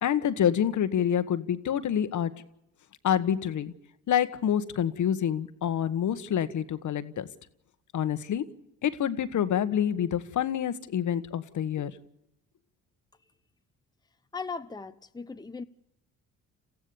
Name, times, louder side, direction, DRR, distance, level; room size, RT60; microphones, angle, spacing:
voice 1, 0.0-2.3 3.0-3.7 4.1-7.3 7.9-8.4 8.8-11.9, left 9 dB, 55° left, 1.4 m, -27 dB
voice 2, 14.3-15.6, left 4 dB, 10° left, 1.0 m, -38 dB
28.0 x 15.0 x 7.0 m
hypercardioid pair, 60°, 36 cm